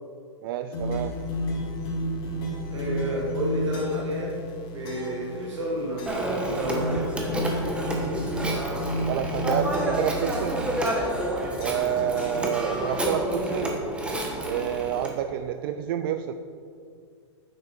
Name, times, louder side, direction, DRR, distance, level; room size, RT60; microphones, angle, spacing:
voice 1, 0.4-1.1 9.1-10.7 11.6-13.9 14.4-16.3, right 10 dB, 50° right, 9 dB, 0.4 m, -29 dB
sound 1, 0.7-4.2 4.8-5.3 6.0-6.4 6.7-10.2 10.8-11.3 11.6-12.9, left 1 dB, 55° left, 2.3 m, -32 dB
sound 2, 0.8-10.8, right 1 dB, 35° left, 0.9 m, -39 dB
voice 2, 2.7-4.4 4.7-7.1, right 1 dB, 85° right, -2 dB, 1.6 m, -30 dB
Telephone, 6.1-15.1, right 1 dB, 5° right, 1.2 m, -29 dB
8.8 x 6.4 x 4.4 m, 2.3 s
hypercardioid pair, 130°, 15 cm